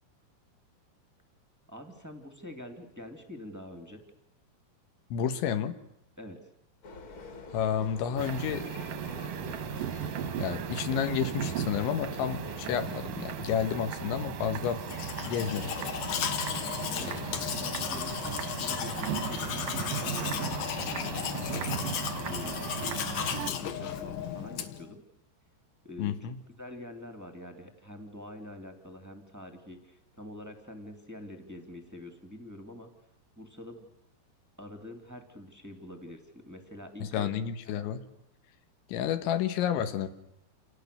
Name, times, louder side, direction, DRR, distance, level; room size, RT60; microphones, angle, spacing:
voice 1, 1.7-4.0 6.2-6.4 16.9-17.2 17.5-21.7 22.3-25.0 25.8-32.9 33.3-33.8 34.6-37.3 37.6-37.9, left 1 dB, 10° right, 4 dB, 0.7 m, -45 dB
voice 2, 5.1-5.8 7.5-8.7 10.4-14.8 15.2-15.7 26.0-26.4 37.0-38.0 38.9-40.1, left 8 dB, 85° left, 8 dB, 3.6 m, -30 dB
sound 1, 6.8-18.6, left 2 dB, 40° left, 2.1 m, -46 dB
sound 2, 8.2-23.5, right 9 dB, 70° right, 2.1 m, -36 dB
Domestic sounds home sounds, 14.8-24.9, left 9 dB, 65° left, 2.6 m, -35 dB
29.0 x 28.5 x 6.8 m, 0.82 s
omnidirectional pair, 5.3 m